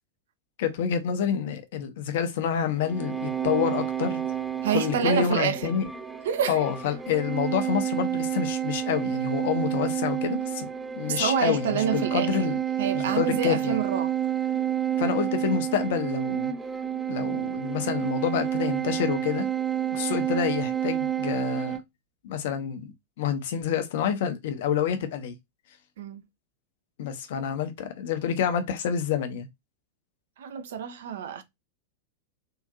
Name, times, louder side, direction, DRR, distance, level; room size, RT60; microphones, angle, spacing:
voice 1, 0.6-4.2 4.7-5.9 6.5-10.7 11.0-12.6 12.9-13.8 15.0-16.5 17.1-19.5 19.9-21.8 22.2-25.3 27.0-29.5, left 8 dB, 55° left, 0.6 m, -28 dB
sound 1, 2.8-21.8, right 10 dB, 5° right, 0.4 m, -29 dB
voice 2, 4.6-5.7 6.2-6.6 11.1-12.5 12.8-14.1 26.0-26.2 30.4-31.4, right 8 dB, 60° right, 0.5 m, -27 dB
3.7 x 2.6 x 2.4 m
figure-of-eight pair, 90°, 0 cm